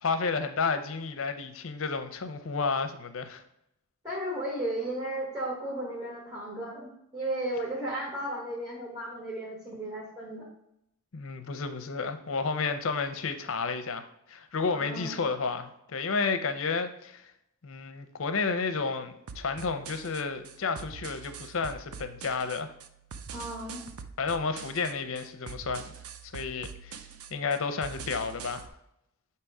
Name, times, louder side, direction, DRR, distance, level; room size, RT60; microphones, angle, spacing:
voice 1, 0.0-3.4 11.1-17.3 17.6-22.7 24.2-25.9 26.3-27.0 27.3-28.7, left 4 dB, 65° left, 9 dB, 0.6 m, -31 dB
voice 2, 4.0-10.5 14.7-15.2 23.3-23.8, right 1 dB, 15° right, -5 dB, 1.3 m, -34 dB
sound 1, 19.3-28.7, right 6 dB, 85° right, 0.5 m, -44 dB
7.5 x 2.9 x 4.7 m, 0.80 s
head